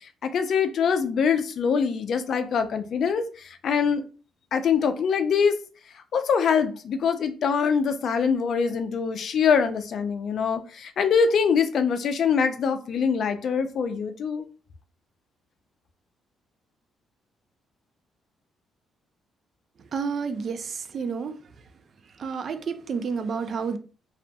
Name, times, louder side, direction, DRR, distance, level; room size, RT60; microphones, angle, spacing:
voice 1, 0.2-3.2 3.6-4.0 4.5-5.6 6.1-14.4, left 6 dB, 60° left, 9 dB, 0.4 m, -23 dB
voice 2, 19.9-21.4 22.2-23.8, right 5 dB, 55° right, 9 dB, 0.4 m, -30 dB
2.6 x 2.4 x 2.2 m, 0.36 s
cardioid pair, 90°, 0 cm